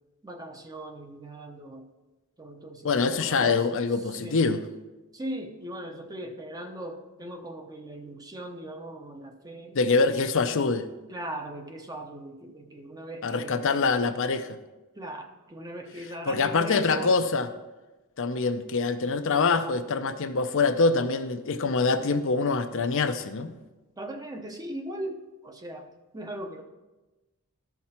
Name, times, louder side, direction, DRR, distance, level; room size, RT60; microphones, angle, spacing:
voice 1, 0.2-1.9 2.4-3.6 4.0-4.5 5.1-9.8 11.1-13.7 15.0-17.1 24.0-26.6, right 1 dB, 15° right, 5 dB, 0.7 m, -39 dB
voice 2, 2.8-4.6 9.7-10.9 13.2-14.6 16.3-17.5 18.2-23.5, left 4 dB, 60° left, 8 dB, 0.6 m, -25 dB
13.0 x 5.9 x 4.3 m, 1.1 s
head